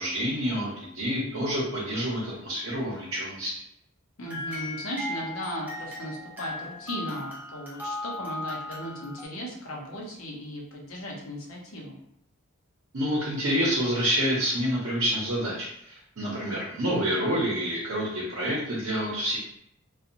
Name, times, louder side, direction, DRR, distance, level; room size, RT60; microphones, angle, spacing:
voice 1, 0.0-3.5 12.9-19.4, equal, 70° right, -5 dB, 0.7 m, -28 dB
voice 2, 4.2-12.0, equal, 80° left, -2 dB, 0.8 m, -36 dB
sound 1, 4.2-9.3, left 1 dB, 10° right, 0.5 m, -37 dB
2.8 x 2.2 x 2.5 m, 0.75 s
head